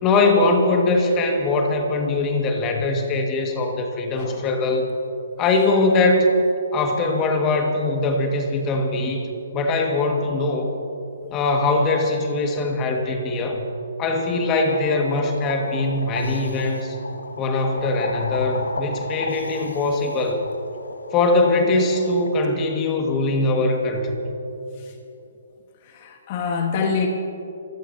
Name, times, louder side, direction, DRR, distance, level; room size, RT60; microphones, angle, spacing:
voice 1, 0.0-4.9 5.4-6.3 6.7-9.3 9.5-10.7 11.3-13.6 14.0-17.0 17.4-20.5 21.1-24.1, left 2 dB, 25° left, 2 dB, 2.0 m, -21 dB
sound 1, 14.6-22.4, left 3 dB, 90° left, 1.5 m, -34 dB
voice 2, 25.8-27.1, left 5 dB, 40° left, 3 dB, 1.6 m, -26 dB
29.0 x 16.5 x 2.9 m, 2.8 s
hypercardioid pair, 140°, 0 cm